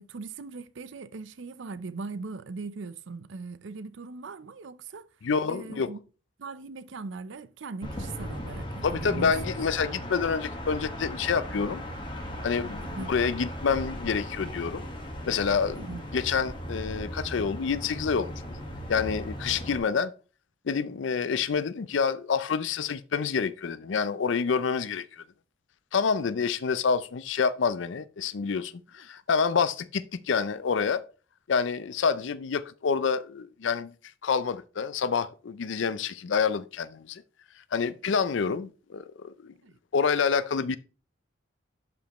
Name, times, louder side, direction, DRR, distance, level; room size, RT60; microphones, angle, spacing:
voice 1, 0.0-5.1 5.5-6.0 6.4-9.3 12.8-13.1 15.8-16.0 39.6-39.8, right 4 dB, 75° right, 0.5 m, -40 dB
voice 2, 5.2-5.9 8.8-11.8 12.4-14.8 15.3-15.9 16.1-18.3 18.9-20.1 20.7-25.2 25.9-31.0 31.5-33.9 34.2-37.2 37.7-39.5 39.9-40.8, left 5 dB, 70° left, 0.4 m, -27 dB
sound 1, 7.8-19.8, equal, 25° left, 1.5 m, -37 dB
11.5 x 5.2 x 3.0 m
head